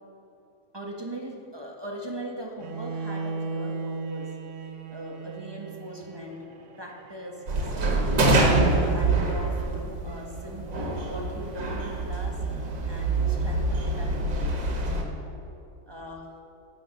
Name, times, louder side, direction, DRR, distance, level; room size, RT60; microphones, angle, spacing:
voice 1, 0.7-4.3 4.9-6.4 6.8-12.4 12.9-14.5 15.8-16.3, equal, 15° right, 0 dB, 1.3 m, -40 dB
Bowed string instrument, 2.6-8.6, right 4 dB, 50° right, 1.0 m, -37 dB
sound 1, 7.5-15.0, right 2 dB, 75° right, 2.4 m, -25 dB
16.0 x 8.8 x 6.6 m, 2.8 s
omnidirectional pair, 2.0 m